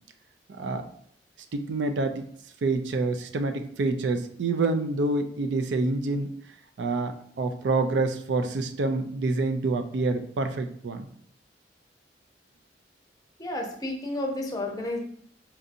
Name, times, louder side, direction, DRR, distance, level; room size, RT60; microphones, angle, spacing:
voice 1, 0.5-0.9 1.5-2.3 2.6-6.3 6.8-11.1, right 3 dB, 70° right, 7 dB, 0.4 m, -27 dB
voice 2, 13.4-15.0, left 1 dB, 20° left, 1 dB, 0.6 m, -31 dB
4.4 x 2.7 x 2.5 m, 0.65 s
head